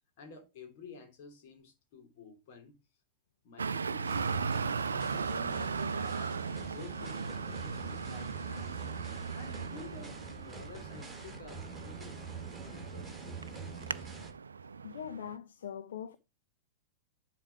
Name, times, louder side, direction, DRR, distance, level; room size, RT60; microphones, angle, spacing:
voice 1, 0.2-2.8 3.4-4.8 5.1-6.4 6.7-8.8 9.3-12.2 12.5-13.8, left 4 dB, 50° left, 3.3 m, -51 dB
Traffic noise roadway noise, 3.6-15.4, right 5 dB, 75° right, 0.4 m, -37 dB
sound 1, 4.1-14.3, right 4 dB, ahead, 5.5 m, -45 dB
voice 2, 14.8-16.2, left 9 dB, 65° left, 0.8 m, -42 dB
10.5 x 5.0 x 4.8 m
figure-of-eight pair, 95°, 0 cm